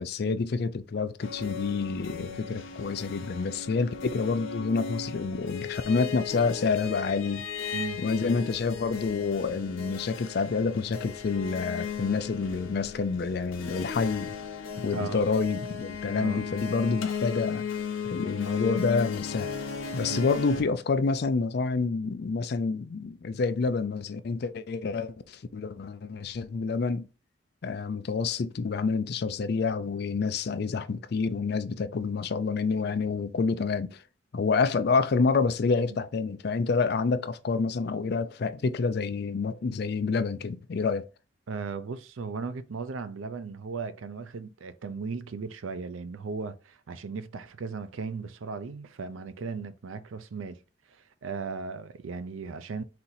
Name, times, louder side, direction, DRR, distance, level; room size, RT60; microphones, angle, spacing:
voice 1, 0.0-7.5 8.0-14.4 14.8-17.6 18.1-19.5 19.9-27.1 27.6-34.0 34.3-41.0, left 4 dB, 55° left, 0.4 m, -28 dB
sound 1, 1.2-20.6, left 6 dB, 85° left, 0.8 m, -36 dB
voice 2, 41.5-50.6 51.2-52.8, right 4 dB, 90° right, 0.5 m, -36 dB
4.2 x 2.7 x 4.0 m
head